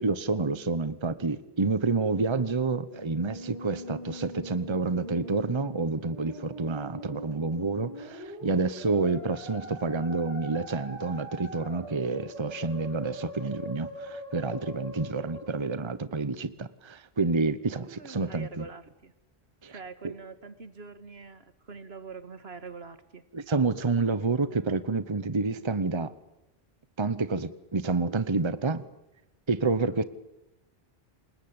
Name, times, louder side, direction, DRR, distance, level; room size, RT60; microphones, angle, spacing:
voice 1, 0.0-18.6 19.6-19.8 20.0-20.1 23.3-26.1 27.0-28.8 29.5-30.0, right 3 dB, 30° right, 1.0 m, -29 dB
Musical instrument, 2.8-15.8, equal, 40° left, 8.1 m, -42 dB
voice 2, 17.9-19.1 19.7-23.2, right 5 dB, 70° right, 2.0 m, -44 dB
28.0 x 20.5 x 8.8 m
omnidirectional pair, 1.1 m